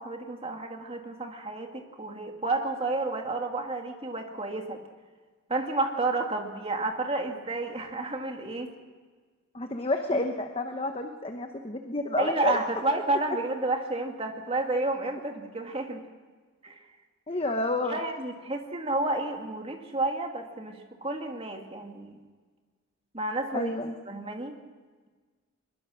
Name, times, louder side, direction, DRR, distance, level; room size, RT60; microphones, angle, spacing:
voice 1, 0.0-4.8 5.5-8.7 10.1-10.2 12.2-16.0 16.6-16.8 17.9-22.2 23.1-23.7 24.1-24.6, right 2 dB, 25° right, 3 dB, 2.2 m, -31 dB
voice 2, 9.5-12.6 17.3-18.0 23.5-23.9, left 2 dB, 25° left, 5 dB, 1.1 m, -30 dB
22.0 x 21.5 x 6.3 m, 1.4 s
head